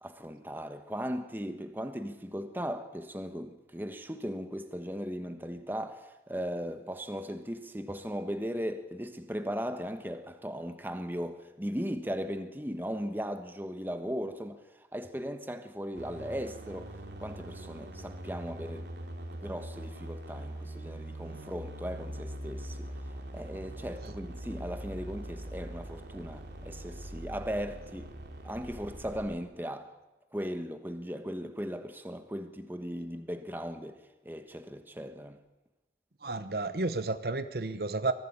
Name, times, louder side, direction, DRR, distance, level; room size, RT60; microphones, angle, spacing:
voice 1, 0.0-18.9 19.4-28.1 28.4-29.9 30.3-35.4, equal, 10° right, 1.3 m, -38 dB
sound 1, 16.0-29.4, right 1 dB, 80° right, 3.1 m, -42 dB
voice 2, 36.2-38.1, right 3 dB, 60° right, 1.0 m, -31 dB
23.0 x 15.0 x 8.7 m
head